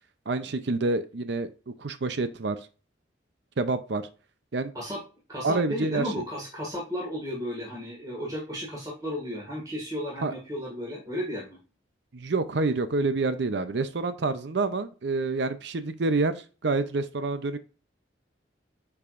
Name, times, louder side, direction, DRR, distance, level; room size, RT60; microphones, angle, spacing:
voice 1, 0.3-1.5 1.8-2.6 3.6-4.0 4.5-4.7 5.4-6.0 10.2-10.3 12.1-17.6, right 3 dB, 65° right, 11 dB, 0.6 m, -27 dB
voice 2, 5.3-11.6, equal, 20° right, -3 dB, 2.0 m, -34 dB
8.5 x 4.8 x 2.5 m, 0.34 s
head